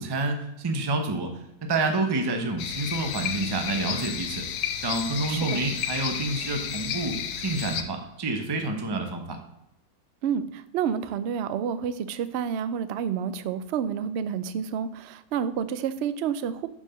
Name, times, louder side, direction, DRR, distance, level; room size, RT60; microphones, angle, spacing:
voice 1, 0.0-4.4 4.8-9.4, right 2 dB, 20° right, 4 dB, 0.6 m, -28 dB
sound 1, 2.6-7.8, left 9 dB, 75° left, 1.2 m, -32 dB
voice 2, 5.3-5.6 10.2-16.7, right 8 dB, 75° right, 13 dB, 0.6 m, -29 dB
5.9 x 4.6 x 6.3 m, 0.84 s
omnidirectional pair, 1.7 m